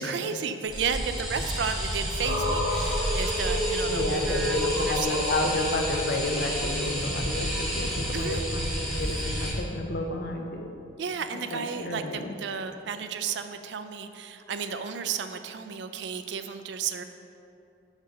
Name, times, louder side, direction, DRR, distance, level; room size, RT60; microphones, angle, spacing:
voice 1, 0.0-5.3 8.1-8.4 8.9-9.0 11.0-17.0, right 6 dB, 65° right, 9 dB, 0.4 m, -33 dB
sound 1, 0.7-9.5, equal, ahead, 1.5 m, -30 dB
sound 2, 2.2-6.5, equal, 85° left, 1.3 m, -30 dB
voice 2, 3.9-10.7 11.5-12.4, left 2 dB, 55° left, 3 dB, 0.5 m, -31 dB
5.1 x 5.0 x 5.2 m, 2.7 s
head